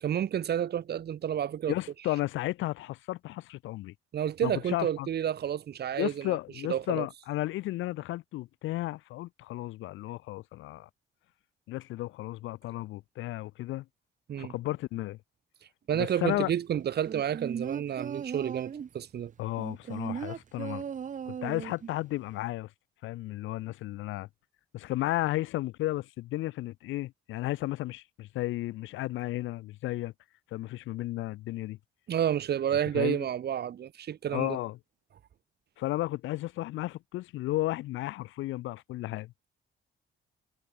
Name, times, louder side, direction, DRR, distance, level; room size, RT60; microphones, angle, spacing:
voice 1, 0.0-1.7 4.1-6.4 6.7-7.1 14.3-14.5 15.9-19.3 32.1-34.6, right 9 dB, 55° right, 1.3 m, -30 dB
voice 2, 1.7-3.9 4.4-5.1 6.0-10.9 11.7-13.9 14.4-15.2 15.9-16.5 19.4-20.8 21.3-22.7 23.0-24.3 24.7-30.1 30.5-31.8 32.9-33.3 34.3-34.8 35.8-39.3, left 16 dB, 80° left, 0.5 m, -33 dB
sound 1, 17.1-19.0 19.6-22.0 22.3-22.4, right 7 dB, 40° right, 0.8 m, -37 dB
cardioid pair, 90°, 20 cm